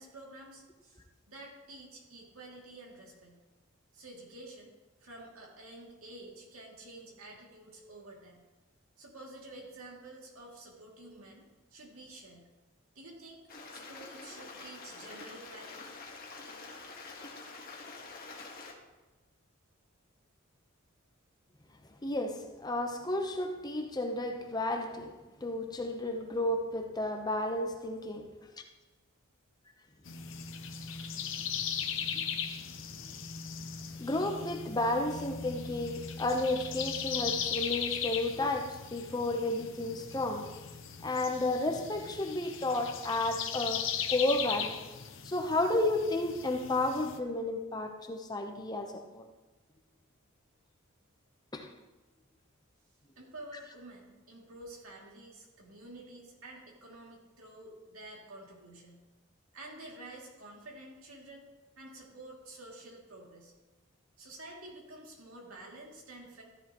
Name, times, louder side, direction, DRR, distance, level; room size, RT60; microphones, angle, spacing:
voice 1, 0.0-3.4 3.9-8.4 9.0-12.5 12.9-13.4 13.7-16.0 53.2-59.0 59.5-61.4 61.8-63.5 64.2-66.4, right 2 dB, 90° right, 2.7 m, -50 dB
Stream, 13.5-18.7, left 3 dB, 45° left, 1.5 m, -47 dB
voice 2, 22.0-25.1 25.4-28.3 32.1-32.3 33.6-33.7 34.0-40.6 41.0-44.8 45.2-49.3 51.5-51.7, left 2 dB, 20° left, 0.8 m, -32 dB
sound 1, 30.0-47.2, left 7 dB, 65° left, 0.9 m, -38 dB
14.0 x 10.5 x 3.1 m
head